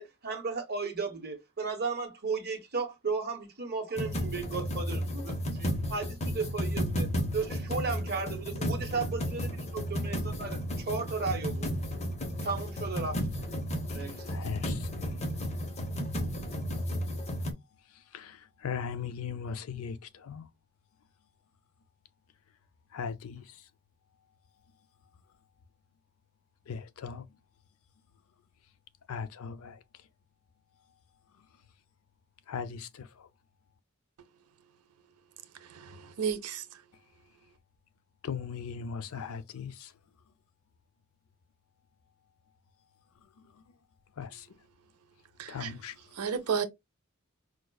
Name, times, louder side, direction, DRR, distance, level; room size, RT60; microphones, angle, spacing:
voice 1, 0.0-11.7 12.4-13.2 13.9-14.3, right 4 dB, 45° right, 1.1 m, -35 dB
sound 1, 4.0-17.5, equal, 30° left, 0.8 m, -33 dB
voice 2, 13.9-14.9 18.1-20.5 22.9-23.6 26.7-27.3 29.1-29.8 32.5-33.3 38.2-39.9 43.6-43.7 44.2-44.5 45.5-46.0, left 6 dB, 70° left, 0.4 m, -38 dB
voice 3, 35.6-36.6 45.4-45.7 46.1-46.7, right 7 dB, 85° right, 0.6 m, -32 dB
4.7 x 2.3 x 2.3 m
head